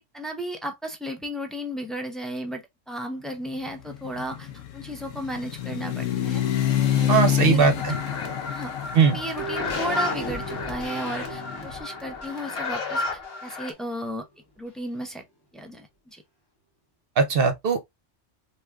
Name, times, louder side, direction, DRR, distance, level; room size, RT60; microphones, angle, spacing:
voice 1, 0.1-6.4 6.9-7.7 8.5-8.7 9.1-14.2 14.6-15.2 15.5-16.2, equal, ahead, 0.4 m, -34 dB
sound 1, 3.7-11.7, left 11 dB, 80° left, 1.1 m, -28 dB
voice 2, 7.1-7.9 8.9-9.2 17.2-17.9, right 6 dB, 55° right, 0.8 m, -20 dB
sound 2, 7.7-13.7, left 3 dB, 55° left, 1.0 m, -33 dB
sound 3, 9.4-13.9 14.1-14.2, equal, 20° left, 0.8 m, -37 dB
3.4 x 3.0 x 2.2 m
omnidirectional pair, 1.3 m